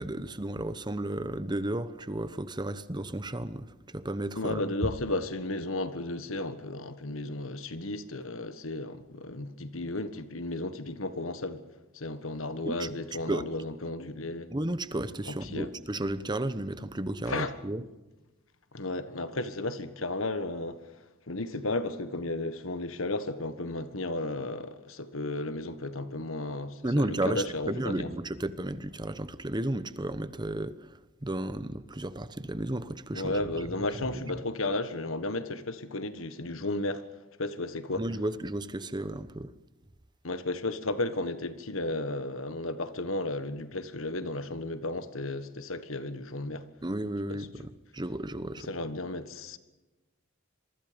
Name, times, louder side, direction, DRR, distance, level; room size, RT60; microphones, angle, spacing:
voice 1, 0.0-3.7 3.9-4.6 12.6-12.9 13.3-13.5 14.5-17.8 26.8-30.7 31.2-33.4 34.1-34.2 38.0-39.5 46.8-47.6 47.9-48.7, right 1 dB, 20° right, 1.0 m, -33 dB
voice 2, 4.3-11.6 11.9-14.5 15.2-15.7 17.2-17.6 18.7-20.8 21.3-28.1 33.1-37.0 37.4-38.0 40.2-46.6 47.3-47.5 48.6-49.6, left 2 dB, 80° left, 1.5 m, -34 dB
27.0 x 23.5 x 5.3 m
head